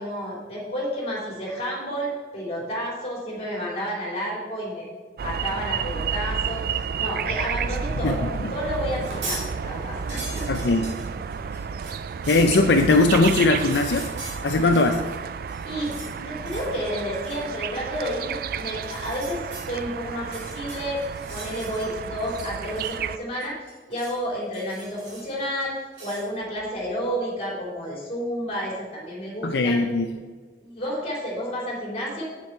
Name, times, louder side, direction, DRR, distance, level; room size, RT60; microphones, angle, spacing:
voice 1, 0.0-4.9 5.2-10.4 15.6-21.0 21.3-23.6 23.9-25.7 26.0-29.9 30.6-32.2, equal, 35° left, -3 dB, 3.0 m, -31 dB
sound 1, 5.2-23.2, right 6 dB, 55° right, 0.3 m, -31 dB
Tool Box, 8.9-9.5 9.8-15.2 15.5-16.1 16.4-16.8 17.1-17.4 18.8-19.7 20.2-21.9 22.2-23.1 23.4-24.2 24.5-25.4 25.9-26.3, right 2 dB, 85° right, 3.0 m, -40 dB
voice 2, 10.5-10.9 12.3-14.1 14.4-15.0 29.4-30.1, left 2 dB, 70° left, 5 dB, 0.5 m, -19 dB
8.3 x 7.5 x 4.5 m, 1.4 s
head